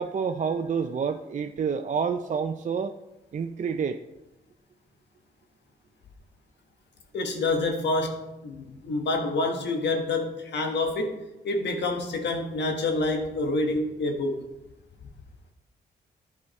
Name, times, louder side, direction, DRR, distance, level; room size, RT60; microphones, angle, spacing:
voice 1, 0.0-3.0 3.3-4.0, right 6 dB, 45° right, 7 dB, 0.5 m, -28 dB
voice 2, 7.1-11.2 11.4-14.4, left 2 dB, 75° left, 3 dB, 1.3 m, -27 dB
10.5 x 4.9 x 4.2 m, 0.96 s
supercardioid pair, 55°, 18 cm